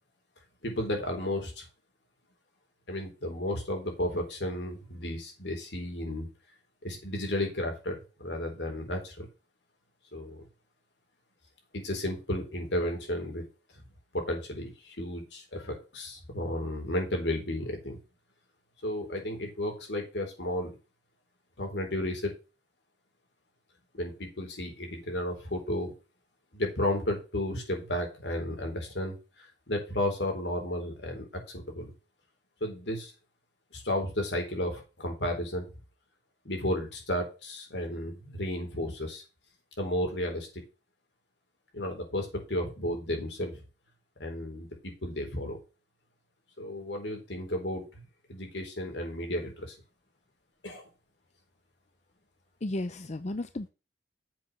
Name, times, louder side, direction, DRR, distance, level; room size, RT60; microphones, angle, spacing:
voice 1, 0.6-1.7 2.9-6.3 6.8-9.3 10.1-10.5 11.7-13.5 14.1-18.0 18.8-20.7 21.6-22.3 23.9-25.9 26.5-31.3 31.5-31.9 32.6-33.1 33.7-35.7 36.4-39.2 39.8-40.6 41.7-43.6 44.2-45.6 46.6-48.0 48.3-49.8 50.6-50.8, left 1 dB, 85° left, 2 dB, 3.9 m, -33 dB
voice 2, 52.6-53.7, left 1 dB, 40° left, 11 dB, 0.6 m, -34 dB
7.5 x 6.0 x 6.0 m, 0.31 s
head